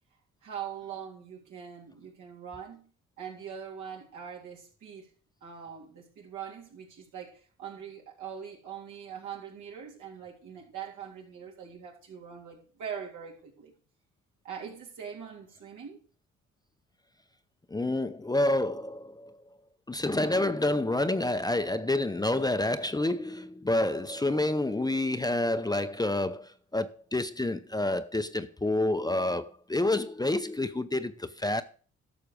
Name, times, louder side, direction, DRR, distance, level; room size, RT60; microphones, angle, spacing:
voice 1, 0.4-2.8 3.2-5.1 5.4-13.7 14.4-16.0, right 8 dB, 75° right, 3.7 m, -42 dB
voice 2, 17.7-19.4 19.9-31.6, left 2 dB, 15° left, 0.7 m, -28 dB
12.0 x 6.5 x 5.1 m
supercardioid pair, 70°, 30 cm